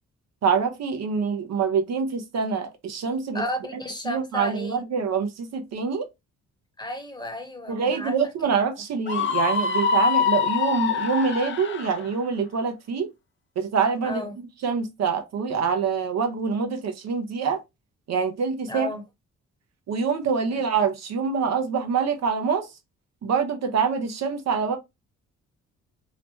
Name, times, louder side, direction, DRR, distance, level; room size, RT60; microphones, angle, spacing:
voice 1, 0.4-3.4 3.7-6.1 7.7-13.1 13.6-17.6 18.1-18.9 19.9-22.7 23.2-24.8, right 5 dB, 60° right, 0.7 m, -25 dB
voice 2, 3.3-4.8 6.8-8.1 14.0-14.3 18.7-19.0 20.5-20.6, left 1 dB, 15° left, 1.0 m, -33 dB
Screaming, 9.1-12.0, left 5 dB, 40° left, 0.5 m, -24 dB
2.9 x 2.1 x 2.9 m
supercardioid pair, 55°, 31 cm